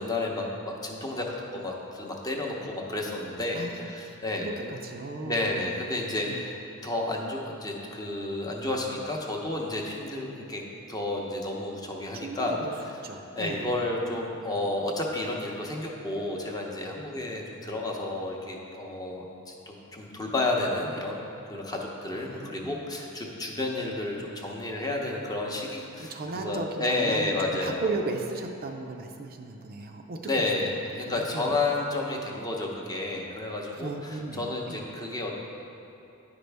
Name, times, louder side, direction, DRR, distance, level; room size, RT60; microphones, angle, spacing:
voice 1, 0.0-4.7 5.2-6.6 6.8-10.6 10.9-12.6 13.4-27.9 30.2-35.3, left 2 dB, 15° left, -1 dB, 0.7 m, -31 dB
voice 2, 3.5-5.5 6.3-6.4 12.1-12.7 13.0-13.9 22.2-22.8 26.0-31.6 33.7-34.8, right 3 dB, 45° right, 3 dB, 0.4 m, -36 dB
9.7 x 5.2 x 3.4 m, 2.8 s
head